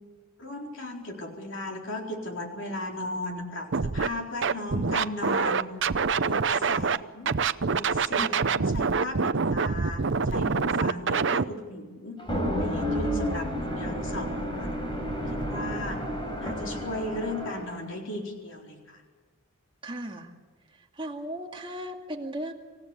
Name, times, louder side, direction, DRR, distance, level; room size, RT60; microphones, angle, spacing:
voice 1, 0.4-5.6 6.2-7.3 7.6-12.2 12.6-14.8 15.3-16.0 16.4-19.0, left 1 dB, 55° left, 1 dB, 4.2 m, -36 dB
Scratching (performance technique), 3.7-4.1 4.4-7.0 7.3-11.4, right 5 dB, 55° right, 0.6 m, -25 dB
sound 1, 12.2-17.8, equal, 20° left, 5.0 m, -31 dB
voice 2, 19.8-20.3 21.0-22.5, right 1 dB, 20° right, 1 dB, 2.2 m, -36 dB
27.0 x 15.5 x 8.5 m, 1.4 s
head